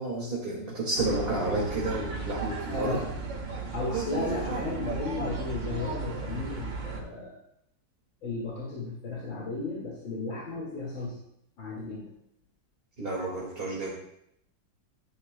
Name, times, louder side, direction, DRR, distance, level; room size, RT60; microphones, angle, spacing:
voice 1, 0.0-3.0 3.9-4.7 13.0-13.9, right 2 dB, 30° right, -6 dB, 2.2 m, -31 dB
sound 1, 1.0-7.0, right 4 dB, 75° right, 2.4 m, -34 dB
voice 2, 2.7-3.1 3.7-7.4 8.2-11.2 11.6-12.1, left 3 dB, 85° left, -5 dB, 2.9 m, -34 dB
14.5 x 10.5 x 2.2 m, 0.75 s
omnidirectional pair, 2.1 m